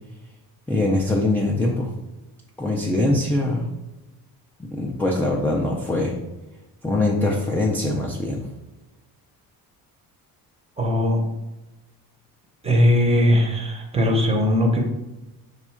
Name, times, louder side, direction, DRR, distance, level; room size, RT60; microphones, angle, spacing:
voice 1, 0.7-1.9 2.6-3.7 4.7-6.1 6.8-8.4, left 2 dB, 5° left, -2 dB, 0.3 m, -22 dB
voice 2, 10.8-11.2 12.6-14.8, left 1 dB, 15° right, 1 dB, 0.7 m, -19 dB
5.0 x 2.3 x 4.3 m, 1.0 s
cardioid pair, 150°, 38 cm